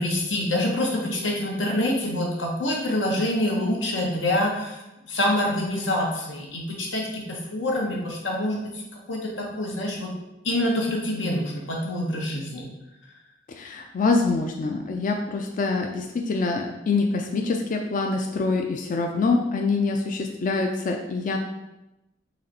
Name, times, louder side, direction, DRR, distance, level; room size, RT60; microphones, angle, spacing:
voice 1, 0.0-8.8 9.1-10.1 10.4-12.6 14.8-14.9, left 1 dB, 85° left, -1 dB, 1.1 m, -26 dB
voice 2, 13.6-21.4, left 3 dB, 45° left, 3 dB, 0.4 m, -25 dB
4.1 x 3.2 x 4.1 m, 0.94 s
head